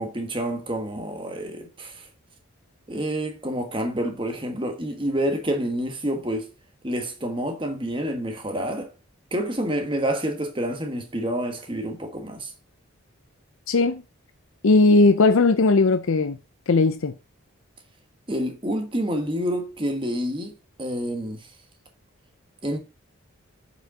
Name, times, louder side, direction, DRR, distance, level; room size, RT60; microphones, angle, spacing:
voice 1, 0.0-2.1 2.9-6.5 6.8-8.9 9.3-12.5 18.3-21.4 22.6-22.8, right 1 dB, 25° right, 1.4 m, -28 dB
voice 2, 13.7-14.0 14.6-16.4 16.7-17.1, left 3 dB, 70° left, 0.6 m, -18 dB
7.9 x 5.1 x 3.7 m
head